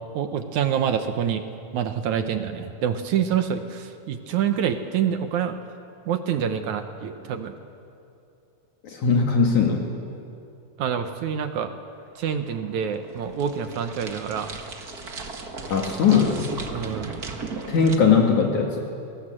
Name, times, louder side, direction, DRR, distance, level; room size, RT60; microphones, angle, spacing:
voice 1, 0.1-1.5 1.7-5.6 6.1-7.6 10.8-11.7 12.2-14.5 16.7-17.1, right 8 dB, 65° right, 7 dB, 2.1 m, -26 dB
voice 2, 8.8-9.9 15.7-16.5 17.7-18.8, left 5 dB, 60° left, 1 dB, 2.9 m, -20 dB
sound 1, 12.0-18.0, right 4 dB, 40° right, 1.4 m, -37 dB
30.0 x 19.0 x 7.7 m, 2.6 s
omnidirectional pair, 4.0 m